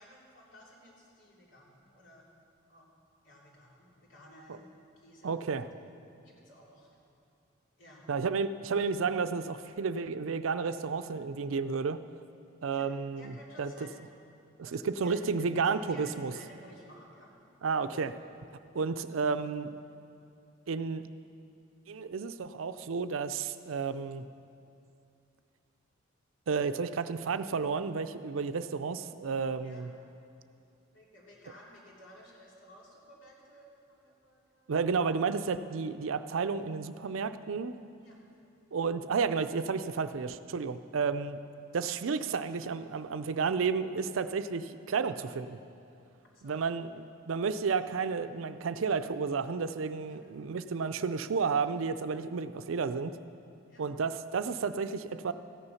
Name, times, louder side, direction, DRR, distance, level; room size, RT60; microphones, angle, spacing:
voice 1, 0.0-2.3 2.7-2.9 3.2-5.7 6.2-7.0 7.8-8.1 12.7-12.9 13.2-14.0 14.6-17.8 29.6-29.9 30.9-34.7 38.0-38.2 46.3-46.6 50.1-50.2 53.7-53.8, equal, 70° left, -4 dB, 3.1 m, -55 dB
voice 2, 5.2-5.7 8.1-12.0 12.6-13.7 14.7-16.3 17.6-18.1 18.7-19.7 20.7-21.0 21.9-24.3 26.5-29.9 34.7-37.8 38.7-41.4 41.7-45.6 46.4-53.2 53.8-55.3, right 5 dB, 80° right, 12 dB, 0.5 m, -32 dB
14.0 x 9.7 x 5.7 m, 2.6 s
head